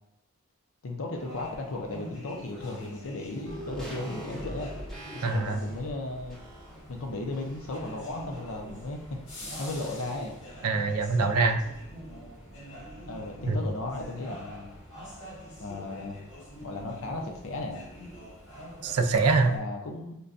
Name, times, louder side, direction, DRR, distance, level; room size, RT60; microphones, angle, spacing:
voice 1, 0.8-4.7 5.1-6.4 6.9-9.2 9.6-10.4 13.1-14.7 15.6-16.2 16.6-17.8 19.4-20.2, left 2 dB, 60° left, 2 dB, 0.5 m, -35 dB
sound 1, 1.1-19.6, equal, 85° left, 1.4 m, -45 dB
sound 2, 3.5-7.9 8.2-8.3, right 1 dB, ahead, 0.5 m, -42 dB
voice 2, 5.2-5.6 10.6-11.6 13.5-13.6 18.8-19.5, right 4 dB, 75° right, 5 dB, 0.4 m, -24 dB
5.2 x 2.2 x 2.5 m, 0.87 s
head